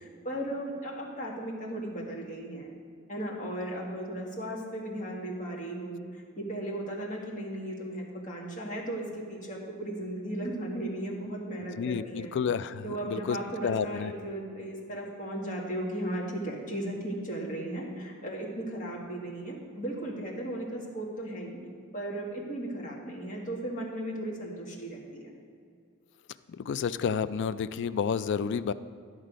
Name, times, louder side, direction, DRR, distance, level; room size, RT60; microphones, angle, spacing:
voice 1, 0.0-2.7 3.1-12.3 12.8-21.6 21.9-25.3, right 1 dB, 35° left, -2 dB, 1.7 m, -36 dB
voice 2, 11.7-13.4 13.6-14.1 26.5-28.7, left 6 dB, 55° left, 14 dB, 0.3 m, -30 dB
11.0 x 6.4 x 5.1 m, 2.2 s
head